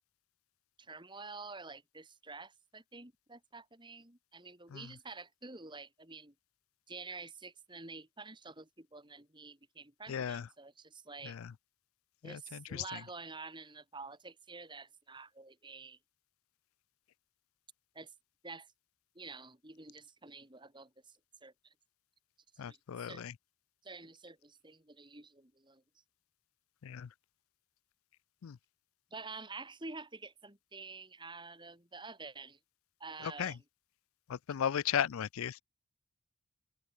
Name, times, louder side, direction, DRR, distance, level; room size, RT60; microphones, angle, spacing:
voice 1, 0.8-6.3 6.9-11.4 12.2-16.0 17.9-18.1 18.4-18.7 19.1-21.7 22.6-23.2 23.8-25.8 29.1-32.6 33.0-33.6, right 3 dB, 20° right, 3.0 m, -49 dB
voice 2, 10.1-10.5 11.2-11.5 12.2-13.0 22.6-23.3 26.8-27.1 28.4-28.6 33.2-33.5 34.3-35.6, left 8 dB, 75° left, 0.4 m, -36 dB
head